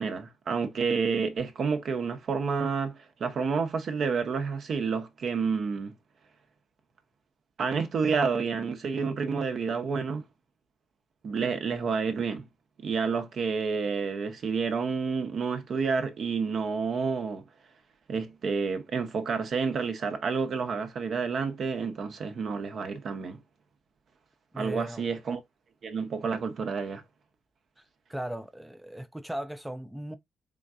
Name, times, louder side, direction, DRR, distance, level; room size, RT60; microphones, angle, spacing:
voice 1, 0.0-5.9 7.6-10.2 11.2-12.4 12.8-17.4 18.1-23.4 24.6-25.4 25.8-27.0, right 5 dB, 55° right, 0.9 m, -29 dB
voice 2, 24.5-25.1 27.8-30.2, right 1 dB, 5° right, 0.4 m, -38 dB
3.8 x 3.6 x 2.4 m
cardioid pair, 90°, 0 cm